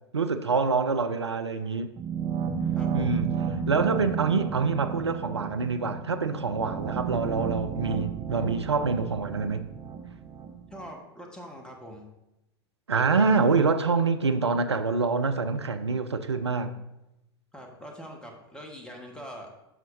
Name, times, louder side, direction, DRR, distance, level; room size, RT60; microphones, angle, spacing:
voice 1, 0.1-1.9 2.9-3.3 3.7-9.7 12.9-16.7, right 4 dB, 85° right, 0.5 m, -26 dB
sound 1, 2.0-10.9, right 7 dB, 25° right, 1.2 m, -32 dB
voice 2, 2.7-3.2 10.7-12.1 17.5-19.5, equal, 5° left, 1.4 m, -43 dB
11.0 x 6.1 x 2.7 m
figure-of-eight pair, 90°, 14 cm